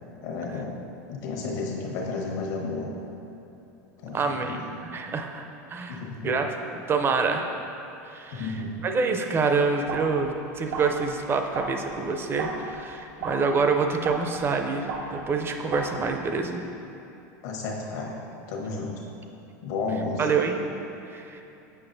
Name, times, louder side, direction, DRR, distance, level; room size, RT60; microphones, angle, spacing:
voice 1, 0.2-0.8 1.1-2.9 4.0-4.7 5.9-6.3 8.3-8.8 17.4-18.2 18.5-18.9 19.6-20.3, left 3 dB, 70° left, -1 dB, 1.1 m, -32 dB
voice 2, 4.1-7.6 8.0-8.5 8.8-16.6 20.2-20.7 21.0-21.4, right 4 dB, 25° right, 5 dB, 0.5 m, -27 dB
sound 1, 9.7-16.4, right 3 dB, 70° right, 1.1 m, -37 dB
7.8 x 5.4 x 2.6 m, 2.9 s
supercardioid pair, 115°, 9 cm